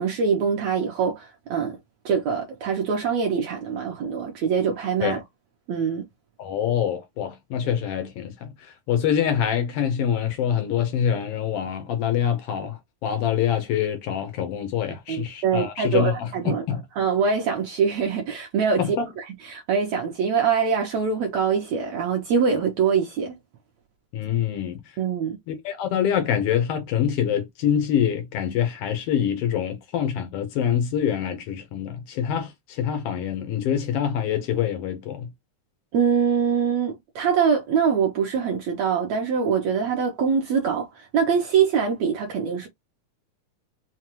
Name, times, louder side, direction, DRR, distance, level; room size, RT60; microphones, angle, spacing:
voice 1, 0.0-1.8 2.0-5.2 5.7-6.0 14.9-16.6 17.0-23.4 25.0-25.4 35.9-42.7, right 6 dB, 75° right, 1.6 m, -24 dB
voice 2, 6.4-16.3 16.7-16.8 18.8-19.1 24.1-24.8 25.5-35.3, left 9 dB, 90° left, 1.3 m, -25 dB
5.7 x 2.2 x 2.9 m
omnidirectional pair, 3.8 m